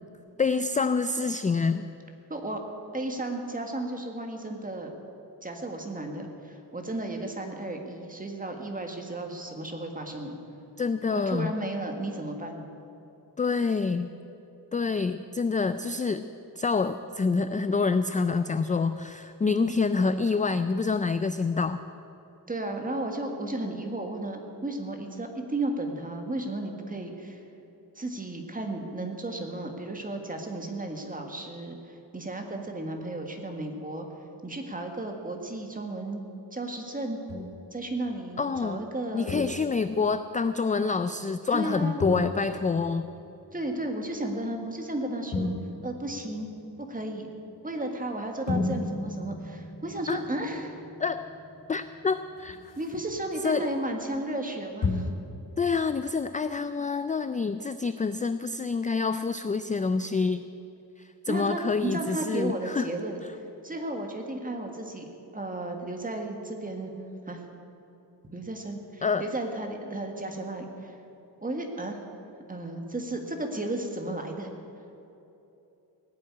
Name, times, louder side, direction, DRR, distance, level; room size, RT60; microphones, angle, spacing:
voice 1, 0.4-1.9 10.8-11.5 13.4-14.1 14.7-16.3 16.6-21.8 38.4-38.8 39.1-43.1 50.1-50.2 51.0-51.3 51.7-52.6 53.4-53.7 55.6-60.5 61.0-62.9 69.0-69.2, left 4 dB, 20° left, 11 dB, 0.3 m, -27 dB
voice 2, 2.3-2.6 2.9-4.9 5.4-10.4 11.1-12.6 19.4-19.6 22.5-27.4 28.0-34.1 34.4-36.2 36.5-37.2 37.7-39.3 41.5-42.0 43.5-45.5 45.8-46.5 46.9-47.3 47.6-50.8 52.8-55.1 61.3-65.1 65.3-66.9 67.3-67.4 68.3-71.0 71.4-72.0 72.5-74.5, right 2 dB, 20° right, 3 dB, 1.8 m, -34 dB
sound 1, 37.3-37.7 38.5-38.7 39.3-40.0 42.0-44.2 45.3-47.2 48.5-53.7 54.0-54.2 54.8-55.2 55.5-55.6, left 2 dB, 80° left, 4.1 m, -34 dB
18.5 x 7.7 x 9.8 m, 2.9 s
wide cardioid pair, 135°, 42 cm